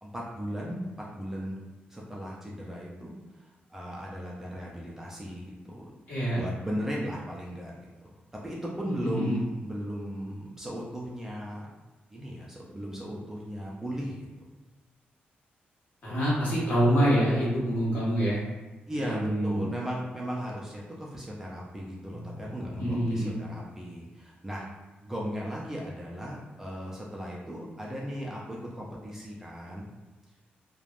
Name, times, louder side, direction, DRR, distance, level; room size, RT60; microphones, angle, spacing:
voice 1, 0.0-0.9 1.1-1.6 1.9-5.9 6.4-7.7 8.0-8.1 8.4-11.7 12.1-14.3 18.9-24.7 25.0-29.9, equal, 10° right, -5 dB, 0.3 m, -37 dB
voice 2, 6.1-6.4 9.0-9.4 16.0-18.4 18.9-19.7 22.4-23.4, equal, 50° left, -8 dB, 1.2 m, -26 dB
3.2 x 2.1 x 2.4 m, 1.2 s
wide cardioid pair, 175°, 4 cm